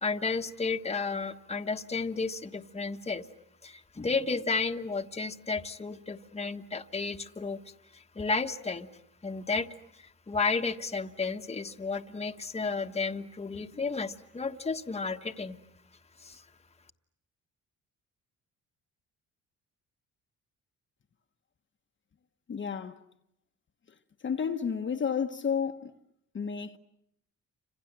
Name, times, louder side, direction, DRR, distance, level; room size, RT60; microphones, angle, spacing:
voice 1, 0.0-3.2 3.6-7.6 8.1-8.9 9.2-9.7 10.0-15.6 16.2-16.4, left 4 dB, 20° left, 1.4 m, -32 dB
voice 2, 22.5-23.0 24.2-25.9 26.3-26.8, left 7 dB, 40° left, 1.3 m, -31 dB
30.0 x 26.5 x 7.5 m
cardioid pair, 90°, 30 cm